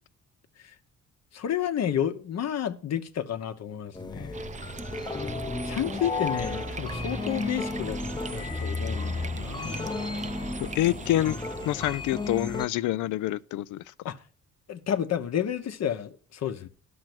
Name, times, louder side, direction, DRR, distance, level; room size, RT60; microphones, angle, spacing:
voice 1, 1.3-4.5 5.6-8.0 8.3-9.9 14.1-14.2 14.7-16.7, left 9 dB, 60° left, 1.0 m, -31 dB
sound 1, 4.0-12.7, left 3 dB, 15° left, 0.7 m, -33 dB
sound 2, 4.3-12.5, right 5 dB, 25° right, 0.5 m, -40 dB
voice 2, 10.6-11.4 11.6-13.8, left 14 dB, 80° left, 0.5 m, -27 dB
12.0 x 6.1 x 6.1 m
cardioid pair, 90°, 30 cm